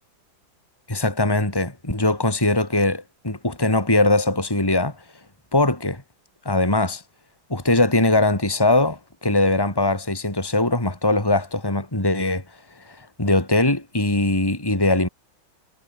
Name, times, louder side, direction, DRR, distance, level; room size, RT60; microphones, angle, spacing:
voice 1, 0.9-5.0 5.5-6.0 6.5-7.0 7.5-12.4 12.9-15.1, left 2 dB, 10° left, 3.7 m, -21 dB
omnidirectional pair, 2.2 m